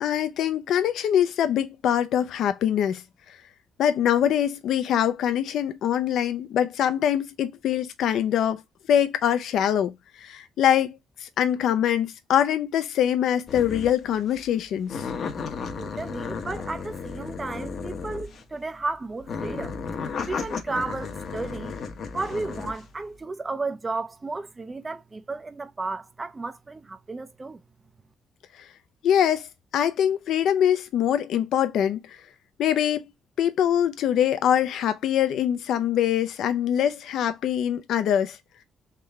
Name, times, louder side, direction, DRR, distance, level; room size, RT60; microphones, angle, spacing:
voice 1, 0.0-3.0 3.8-8.6 8.9-15.0 29.0-29.5 29.7-32.0 32.6-33.0 33.4-38.4, left 10 dB, 75° left, 0.5 m, -23 dB
sound 1, 13.5-14.0 14.3-14.5 14.9-18.5 19.2-22.8, left 5 dB, 60° left, 0.9 m, -34 dB
voice 2, 15.8-19.8 20.3-21.7 22.1-27.6, right 3 dB, 25° right, 0.4 m, -33 dB
3.7 x 3.1 x 3.4 m
cardioid pair, 90°, 0 cm